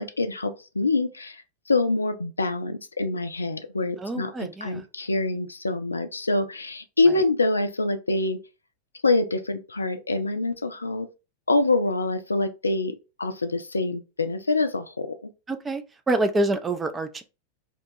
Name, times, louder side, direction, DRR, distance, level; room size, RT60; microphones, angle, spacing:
voice 1, 0.0-8.4 9.0-11.1 11.5-15.2, left 2 dB, 80° left, 0.3 m, -25 dB
voice 2, 4.0-4.9 7.1-7.2 15.5-17.2, right 2 dB, 15° right, 0.4 m, -27 dB
2.8 x 2.2 x 2.6 m
figure-of-eight pair, 90°, 0 cm